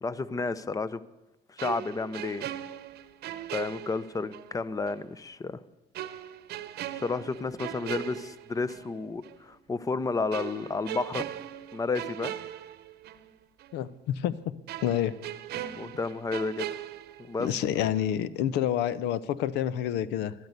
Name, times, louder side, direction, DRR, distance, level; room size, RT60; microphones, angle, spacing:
voice 1, 0.0-1.0 1.5-2.5 3.5-5.6 6.9-11.3 11.7-12.4 15.5-16.8 17.2-17.5, left 3 dB, 20° left, 16 dB, 0.7 m, -31 dB
sound 1, 1.6-4.5 4.9-5.0 5.9-8.9 9.2-9.4 10.3-13.3 13.6-13.7 14.7-17.7 18.0-18.2, right 12 dB, 70° right, 0.9 m, -39 dB
voice 2, 13.7-14.3 14.8-15.1 17.4-20.3, left 10 dB, 85° left, 17 dB, 0.7 m, -28 dB
13.5 x 11.5 x 8.1 m, 0.96 s
cardioid pair, 110°, 17 cm